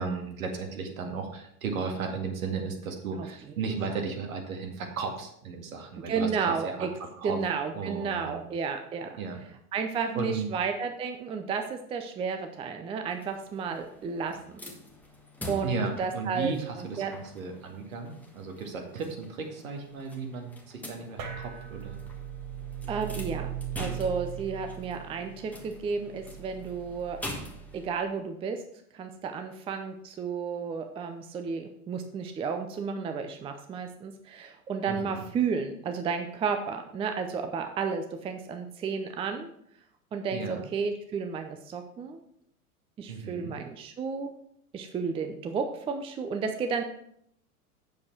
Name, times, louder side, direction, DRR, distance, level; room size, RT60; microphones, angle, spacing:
voice 1, 0.0-6.9 7.2-7.4 7.7-8.4 9.2-9.4 10.2-10.6 15.6-22.0 34.9-35.2 40.3-40.6 43.1-43.6, right 5 dB, 65° right, 3 dB, 2.1 m, -35 dB
voice 2, 6.1-6.9 7.2-9.2 9.7-14.4 15.5-17.1 22.9-27.2 27.7-28.6 28.9-39.5 40.1-42.2 43.0-44.3 44.7-46.8, right 5 dB, 15° right, 6 dB, 0.5 m, -32 dB
sound 1, 13.1-27.9, left 1 dB, 5° left, 1.4 m, -45 dB
sound 2, 21.2-27.9, right 9 dB, 40° right, 1.7 m, -39 dB
8.3 x 7.1 x 4.5 m, 0.69 s
figure-of-eight pair, 90°, 45 cm